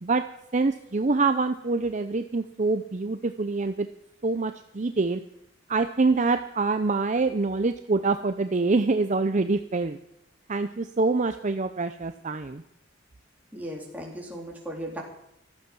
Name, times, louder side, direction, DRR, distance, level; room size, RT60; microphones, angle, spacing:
voice 1, 0.5-3.9 4.2-5.2 5.7-10.0 10.5-12.6, right 3 dB, 40° right, 8 dB, 0.6 m, -25 dB
voice 2, 13.5-15.0, equal, 10° right, -2 dB, 3.9 m, -36 dB
15.0 x 13.5 x 6.2 m, 0.80 s
head